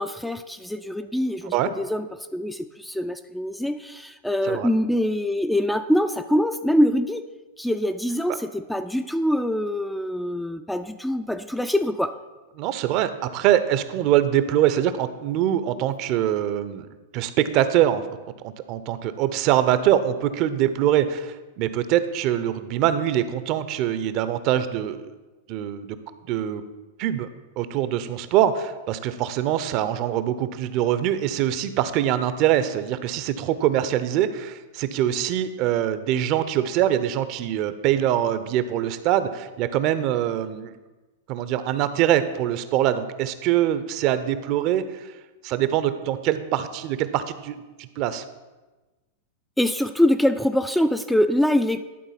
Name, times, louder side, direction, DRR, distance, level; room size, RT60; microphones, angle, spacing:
voice 1, 0.0-2.1 2.3-7.3 7.6-12.1 49.6-51.8, left 1 dB, 5° left, 9 dB, 0.3 m, -24 dB
voice 2, 12.6-16.9 17.1-18.0 18.4-25.1 25.5-26.0 26.3-26.6 27.0-27.3 27.6-40.7 41.3-45.1 45.4-48.2, right 11 dB, 45° right, 12 dB, 0.6 m, -23 dB
11.0 x 4.0 x 5.7 m, 1.2 s
hypercardioid pair, 100°, 0 cm